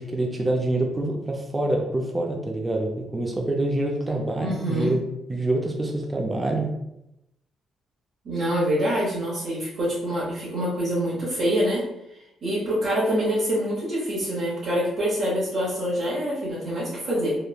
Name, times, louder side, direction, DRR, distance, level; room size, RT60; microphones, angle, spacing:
voice 1, 0.0-5.0 5.3-6.7, right 2 dB, 20° right, 0 dB, 0.4 m, -26 dB
voice 2, 4.4-4.9 8.2-11.8 12.4-17.4, equal, 60° right, -9 dB, 0.9 m, -25 dB
3.0 x 2.1 x 2.3 m, 0.86 s
cardioid pair, 90°, 0 cm